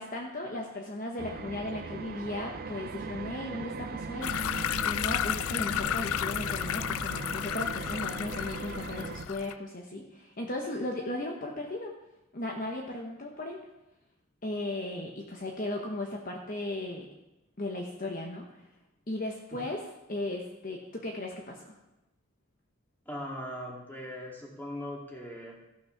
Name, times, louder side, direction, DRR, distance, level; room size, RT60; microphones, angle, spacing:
voice 1, 0.0-4.3 4.8-11.9 12.3-13.6 14.4-17.1 17.6-18.6 19.1-19.8 20.1-21.7, left 1 dB, 40° left, 0 dB, 1.1 m, -36 dB
sound 1, 1.2-9.2, right 4 dB, 45° right, 0.4 m, -39 dB
sound 2, 4.2-9.5, left 10 dB, 80° left, 0.3 m, -32 dB
voice 2, 23.1-25.6, equal, 10° left, -2 dB, 2.4 m, -39 dB
14.5 x 6.3 x 5.9 m, 0.93 s
head